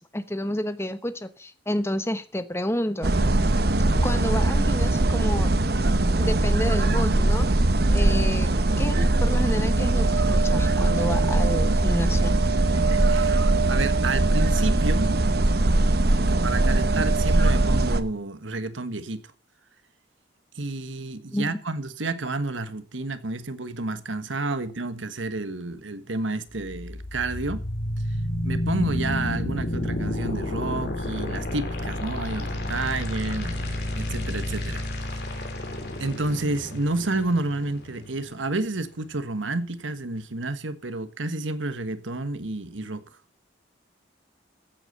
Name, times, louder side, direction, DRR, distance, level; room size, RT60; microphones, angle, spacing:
voice 1, 0.1-3.1 4.0-5.5 6.2-7.5 7.9-12.3 21.3-21.6, left 1 dB, 15° left, 1.0 m, -30 dB
sound 1, 3.0-18.0, right 2 dB, 55° right, 1.0 m, -21 dB
voice 2, 12.7-15.1 16.1-19.2 20.5-27.6 28.4-34.8 36.0-43.0, right 2 dB, 90° right, 1.4 m, -30 dB
sound 2, 26.5-38.5, left 1 dB, 60° left, 3.2 m, -30 dB
14.5 x 8.2 x 6.8 m
head